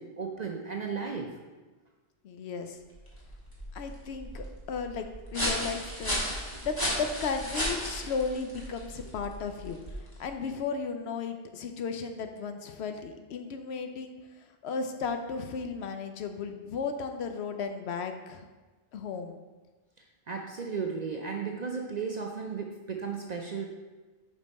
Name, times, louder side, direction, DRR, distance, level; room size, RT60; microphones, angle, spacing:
voice 1, 0.0-1.3 20.3-23.6, right 5 dB, 55° right, 1 dB, 0.5 m, -35 dB
voice 2, 2.2-2.8 3.7-5.1 5.3-6.2 6.6-14.1 14.6-18.5 18.9-19.4, left 5 dB, 70° left, 6 dB, 0.8 m, -35 dB
sound 1, 2.9-10.3, equal, 20° left, 1.4 m, -35 dB
5.3 x 5.3 x 4.1 m, 1.3 s
omnidirectional pair, 1.2 m